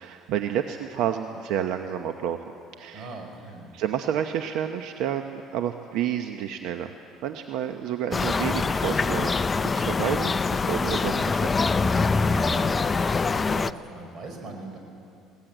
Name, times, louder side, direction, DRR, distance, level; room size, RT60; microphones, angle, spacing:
voice 1, 0.0-3.2 3.7-6.9 7.2-9.3 9.7-11.7, right 9 dB, 75° right, 6 dB, 0.9 m, -30 dB
voice 2, 2.9-3.7 12.2-14.8, right 3 dB, 40° right, 2 dB, 5.4 m, -40 dB
sound 1, 8.1-13.7, left 4 dB, 20° left, 0.5 m, -24 dB
20.5 x 18.5 x 9.1 m, 2.6 s
cardioid pair, 135°, 0 cm